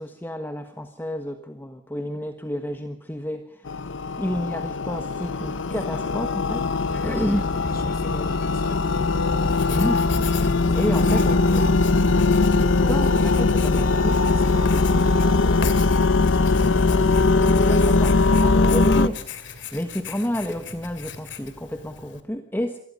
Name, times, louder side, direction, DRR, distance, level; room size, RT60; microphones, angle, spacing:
voice 1, 0.0-3.9 4.2-7.6 9.7-10.1 10.4-11.7 12.8-14.2 17.7-22.8, equal, 10° left, 1.3 m, -30 dB
sound 1, 3.7-19.1, left 3 dB, 90° left, 0.9 m, -20 dB
sound 2, 6.9-8.2 9.0-13.0 13.8-15.4 16.2-16.4, equal, 40° right, 4.7 m, -37 dB
voice 2, 7.3-8.9 10.7-11.7 14.3-17.5, left 2 dB, 50° left, 2.4 m, -41 dB
Writing, 9.4-22.2, left 7 dB, 70° left, 2.7 m, -39 dB
27.0 x 20.0 x 5.4 m
head